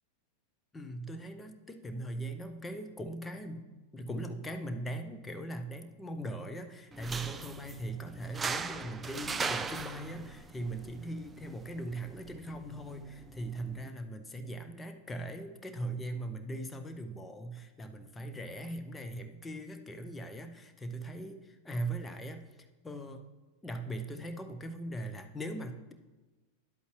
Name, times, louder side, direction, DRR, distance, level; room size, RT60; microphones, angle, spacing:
voice 1, 0.7-3.7 3.9-22.5 22.8-23.3 23.6-25.9, right 1 dB, 10° left, 7 dB, 0.7 m, -40 dB
sound 1, 6.9-13.9, right 5 dB, 15° right, 0.4 m, -40 dB
10.5 x 8.1 x 3.1 m, 1.2 s
figure-of-eight pair, 90°, 0 cm